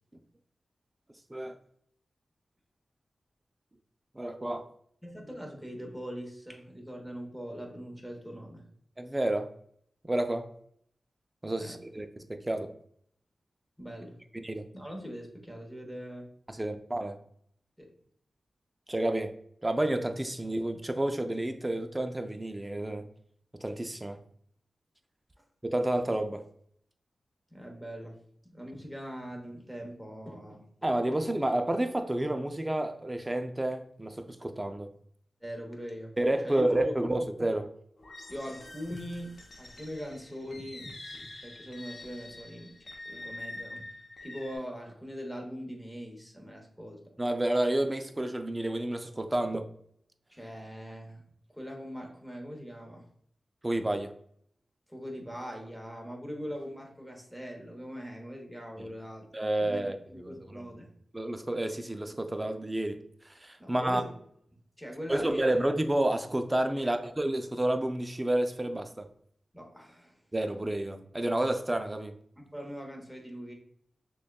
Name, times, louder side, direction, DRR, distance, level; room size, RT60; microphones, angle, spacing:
voice 1, 4.2-4.7 9.0-9.5 10.0-10.5 11.4-12.7 14.3-14.7 16.5-17.2 18.9-19.3 19.6-23.1 23.5-24.2 25.6-26.4 30.8-34.9 36.2-37.7 47.2-49.7 53.6-54.1 58.8-58.9 59.3-60.7 61.1-63.0 63.3-64.0 65.1-69.1 70.3-72.1, right 1 dB, 20° right, 7 dB, 0.4 m, -30 dB
voice 2, 5.0-8.6 11.6-11.8 13.8-14.2 14.7-16.3 17.8-17.9 25.4-25.5 27.5-30.6 35.4-36.2 36.4-36.9 38.3-43.9 44.2-47.1 50.3-51.2 51.5-53.1 54.9-59.3 59.6-60.9 63.6-64.2 64.8-65.6 66.7-67.0 69.5-70.2 72.4-73.5, equal, ahead, 1 dB, 1.0 m, -41 dB
sound 1, 38.0-44.6, left 2 dB, 65° left, 0.7 m, -46 dB
6.2 x 2.3 x 2.3 m, 0.67 s
wide cardioid pair, 80°, 0 cm